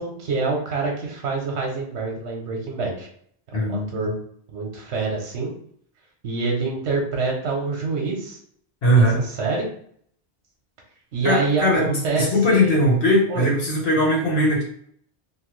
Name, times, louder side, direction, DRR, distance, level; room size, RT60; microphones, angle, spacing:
voice 1, 0.0-3.1 3.7-4.2 4.5-5.5 6.2-8.4 8.9-9.7 11.1-12.8 13.3-13.5, right 4 dB, 85° right, 0 dB, 1.0 m, -26 dB
voice 2, 3.5-4.1 8.8-9.2 11.2-14.6, equal, 65° left, -2 dB, 1.2 m, -20 dB
3.0 x 2.2 x 3.0 m, 0.64 s
omnidirectional pair, 1.1 m